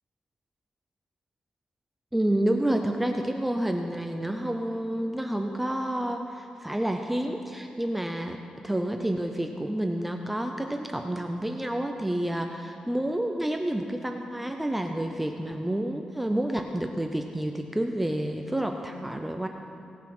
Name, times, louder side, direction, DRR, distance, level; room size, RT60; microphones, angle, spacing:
voice 1, 2.1-19.5, right 1 dB, 5° right, 4 dB, 0.5 m, -29 dB
18.0 x 7.3 x 6.0 m, 2.8 s
wide cardioid pair, 165°, 2 cm